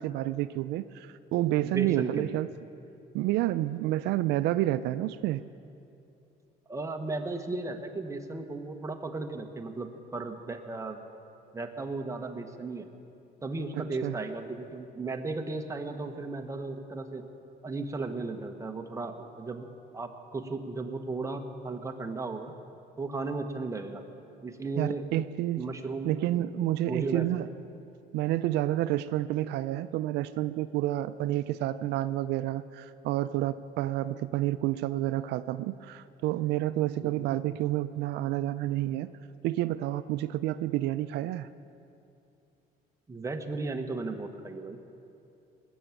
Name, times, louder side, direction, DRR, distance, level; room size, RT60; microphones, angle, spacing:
voice 1, 0.0-2.5 3.1-5.4 14.0-14.2 24.8-25.6 26.1-27.5 28.1-39.1 39.4-41.5, right 14 dB, 80° right, 14 dB, 0.4 m, -29 dB
voice 2, 1.6-2.4 6.7-11.0 11.5-12.9 13.4-17.2 17.6-19.7 19.9-22.5 23.0-24.0 24.4-25.1 25.6-26.1 26.9-27.3 37.0-37.3 43.1-44.8, right 3 dB, 20° right, 5 dB, 1.2 m, -35 dB
20.0 x 7.0 x 9.1 m, 2.7 s
cardioid pair, 110°, 17 cm